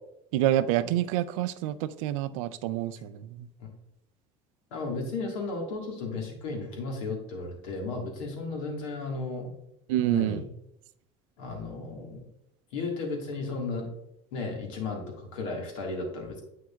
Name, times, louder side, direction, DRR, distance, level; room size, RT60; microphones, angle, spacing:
voice 1, 0.3-3.5 9.9-10.4, right 13 dB, 85° right, 13 dB, 0.4 m, -27 dB
voice 2, 4.7-9.5 10.1-10.5 11.4-12.3 12.7-13.9 14.3-16.4, left 3 dB, 85° left, 1 dB, 1.7 m, -34 dB
7.6 x 6.2 x 2.3 m, 0.79 s
supercardioid pair, 95°, 16 cm